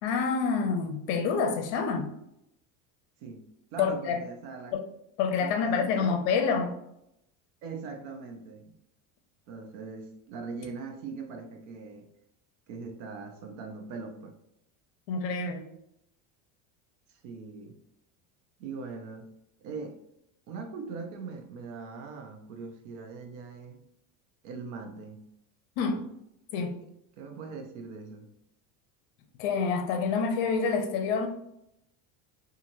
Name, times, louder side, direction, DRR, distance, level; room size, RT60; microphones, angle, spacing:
voice 1, 0.0-2.1 3.8-4.2 4.7-4.8 5.2-6.8 15.1-15.7 25.8-26.0 26.5-26.8 29.4-31.3, left 5 dB, 60° left, 0.6 m, -27 dB
voice 2, 3.7-4.7 5.4-6.1 7.6-8.8 9.5-12.1 12.7-14.4 17.1-17.8 18.6-19.3 19.6-20.0 20.5-23.8 24.4-25.2 27.2-28.3, right 4 dB, 70° right, 0.6 m, -41 dB
2.9 x 2.5 x 2.6 m
cardioid pair, 170°, 39 cm